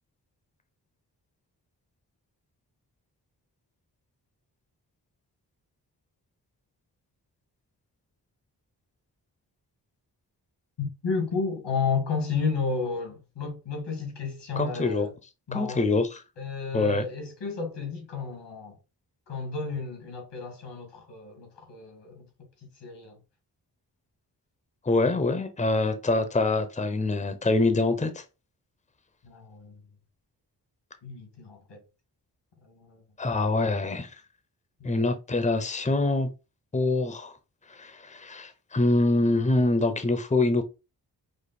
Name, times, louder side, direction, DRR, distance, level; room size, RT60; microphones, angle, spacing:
voice 1, 11.0-15.1 15.5-15.9 16.4-18.7 19.3-22.2 22.8-23.2 29.2-29.8 31.0-31.8 32.6-33.0 34.8-35.0, left 4 dB, 90° left, 2.3 m, -32 dB
voice 2, 14.6-15.1 15.5-16.2 16.7-17.0 24.8-28.2 33.2-34.1 34.8-36.3 36.7-37.3 37.7-40.6, left 2 dB, 15° left, 0.8 m, -25 dB
5.2 x 2.0 x 4.2 m
cardioid pair, 65°, 41 cm